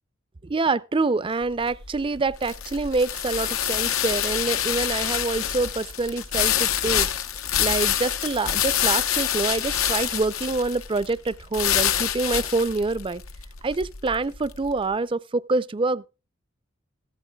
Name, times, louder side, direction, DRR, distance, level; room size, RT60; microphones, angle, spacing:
voice 1, 0.4-7.1 7.6-13.2 13.6-16.1, right 3 dB, 25° right, 0.4 m, -26 dB
sound 1, 1.4-14.7, left 10 dB, 85° left, 0.9 m, -26 dB
14.5 x 13.0 x 2.3 m
head